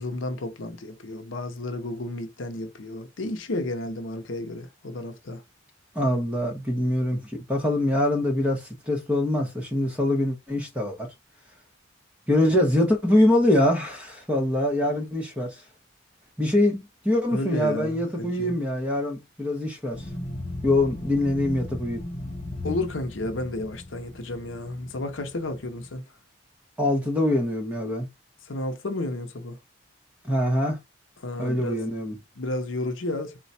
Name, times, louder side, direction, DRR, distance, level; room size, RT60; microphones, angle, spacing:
voice 1, 0.0-5.4 17.3-18.5 22.6-26.0 28.5-29.6 31.2-31.9 32.4-33.4, left 2 dB, 70° left, 0.7 m, -32 dB
voice 2, 5.9-11.1 12.3-15.5 16.4-20.0 20.6-22.0 26.8-28.1 30.2-30.8 31.4-32.2, left 1 dB, 5° right, 1.0 m, -24 dB
sound 1, 19.9-25.9, left 1 dB, 30° left, 0.5 m, -37 dB
4.0 x 2.3 x 4.2 m
head